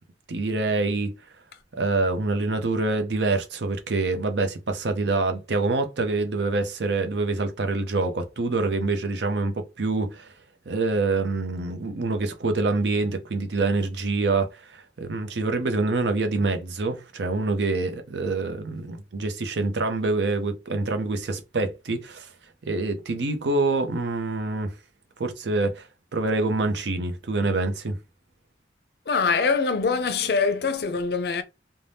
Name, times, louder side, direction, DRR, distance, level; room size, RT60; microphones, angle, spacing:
voice 1, 0.3-1.1 1.8-10.3 10.7-22.3 22.7-24.7 25.2-25.9 26.1-28.0, right 3 dB, 75° right, 0.6 m, -26 dB
voice 2, 29.1-31.4, left 5 dB, 60° left, 0.4 m, -23 dB
2.6 x 2.1 x 3.3 m
head